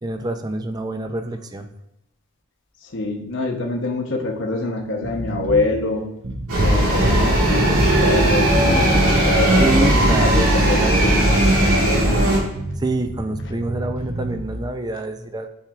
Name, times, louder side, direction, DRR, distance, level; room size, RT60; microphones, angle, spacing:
voice 1, 0.0-1.7 9.6-11.4 12.8-15.5, right 2 dB, 20° right, 8 dB, 0.4 m, -26 dB
voice 2, 2.9-6.0 6.6-12.2, left 2 dB, 55° left, 2 dB, 0.8 m, -25 dB
sound 1, 5.0-5.7 6.2-6.9 7.7-8.7 9.1-10.5 10.9-11.8 12.6-14.6, right 1 dB, 60° right, 1.0 m, -31 dB
sound 2, 6.5-12.4, right 1 dB, 85° right, 2.1 m, -17 dB
8.7 x 4.6 x 2.3 m, 0.84 s
head